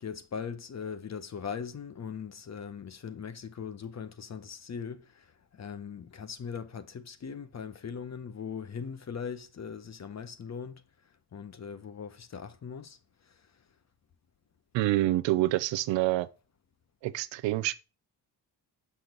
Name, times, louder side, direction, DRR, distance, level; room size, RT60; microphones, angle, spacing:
voice 1, 0.0-10.8 11.3-13.0 13.2-13.4, left 6 dB, 40° left, 1.0 m, -40 dB
voice 2, 14.7-16.3 17.0-17.7, right 16 dB, 90° right, 0.7 m, -27 dB
6.4 x 5.8 x 3.9 m
cardioid pair, 85°, 44 cm